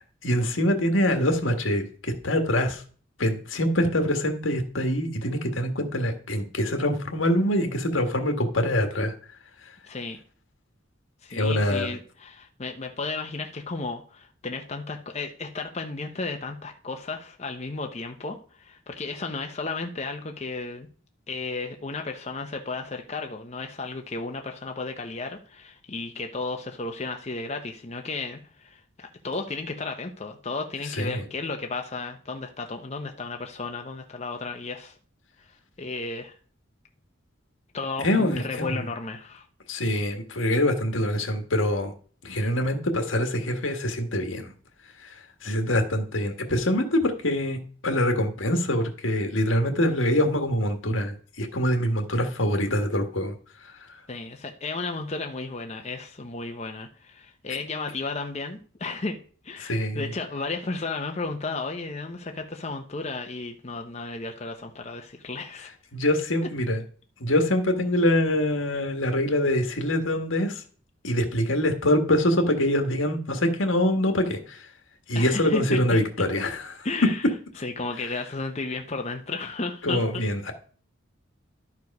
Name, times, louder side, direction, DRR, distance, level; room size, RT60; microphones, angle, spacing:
voice 1, 0.0-2.8 3.2-9.1 11.3-11.9 31.0-31.2 38.0-38.7 39.7-41.9 42.2-44.5 45.0-47.6 47.8-53.3 53.6-54.0 57.5-57.6 59.6-60.1 65.9-66.8 67.2-70.6 71.0-74.7 75.1-76.9 79.8-80.5, left 1 dB, 85° left, 5 dB, 1.6 m, -25 dB
voice 2, 9.9-10.2 11.2-20.9 21.3-34.9 35.8-36.4 37.7-39.4 54.1-59.2 59.4-65.7 75.1-76.0 76.8-77.2 77.6-80.0, left 3 dB, 35° left, 4 dB, 0.8 m, -33 dB
12.0 x 4.8 x 5.3 m, 0.43 s
head